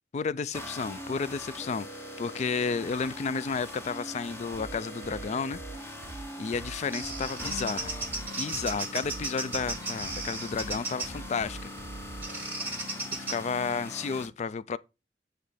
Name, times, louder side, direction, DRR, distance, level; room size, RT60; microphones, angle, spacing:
voice 1, 0.1-5.6 6.4-7.9 8.4-11.7 13.1-14.8, left 5 dB, 40° left, 0.3 m, -32 dB
sound 1, 0.5-14.3, left 1 dB, 15° left, 1.1 m, -42 dB
sound 2, 4.5-12.5, right 3 dB, 50° right, 0.7 m, -44 dB
Bird vocalization bird call bird song, 6.5-11.2 12.2-13.4, right 3 dB, 10° right, 1.3 m, -36 dB
8.8 x 3.2 x 4.8 m
head